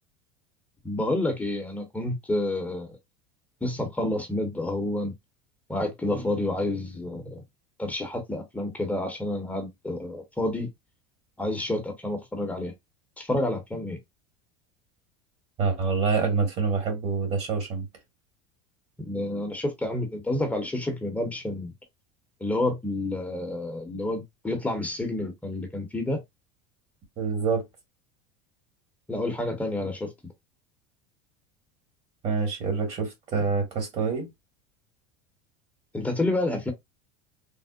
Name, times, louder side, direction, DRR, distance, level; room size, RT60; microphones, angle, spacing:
voice 1, 0.8-3.0 3.6-5.1 5.7-7.4 7.8-10.7 11.4-12.7 13.2-14.0 19.0-21.7 22.4-26.2 29.1-30.3 35.9-36.7, left 1 dB, 10° left, 0.7 m, -29 dB
voice 2, 15.6-17.8 27.2-27.6 32.2-34.3, right 5 dB, 45° right, 1.4 m, -26 dB
3.5 x 2.0 x 2.3 m
supercardioid pair, 100°, 15 cm